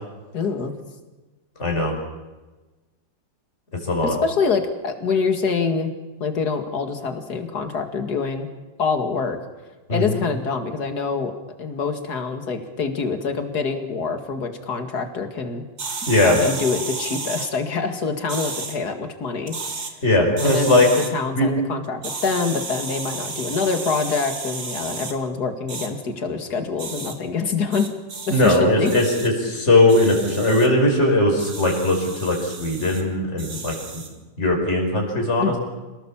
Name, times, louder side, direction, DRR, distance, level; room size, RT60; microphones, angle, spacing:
voice 1, 0.3-0.7 4.0-5.9 6.2-8.5 8.8-9.4 9.9-11.3 11.6-15.6 16.2-19.6 20.4-27.9 28.3-28.9 35.4-35.6, left 5 dB, 60° left, 6 dB, 2.6 m, -25 dB
voice 2, 1.6-2.0 3.8-4.2 9.9-10.2 16.1-16.4 20.0-20.9 21.3-21.5 28.3-34.0 34.4-35.6, left 1 dB, 35° left, 1 dB, 5.0 m, -19 dB
sound 1, 15.8-17.5 18.3-18.8 19.4-19.9 20.4-21.1 22.0-25.1 25.7-25.9 26.8-27.1 27.7-28.6 28.8-29.3 29.9-30.7 31.4-33.0 33.4-34.1, right 4 dB, 55° right, 2.7 m, -32 dB
27.5 x 18.5 x 7.3 m, 1.2 s
omnidirectional pair, 2.0 m